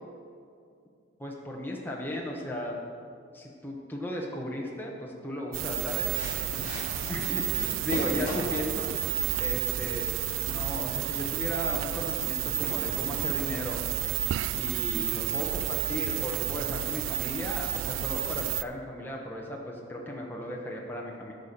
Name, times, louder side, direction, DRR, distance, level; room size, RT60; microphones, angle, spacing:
voice 1, 1.2-2.8 3.3-6.1 7.1-8.9 9.4-10.1 10.5-13.8 14.5-21.3, left 1 dB, 10° left, -2 dB, 1.1 m, -35 dB
sound 1, 5.5-18.6, right 13 dB, 85° right, 0.3 m, -31 dB
sound 2, 5.7-13.2, left 1 dB, 40° left, 3.2 m, -41 dB
12.5 x 5.6 x 6.7 m, 2.4 s
head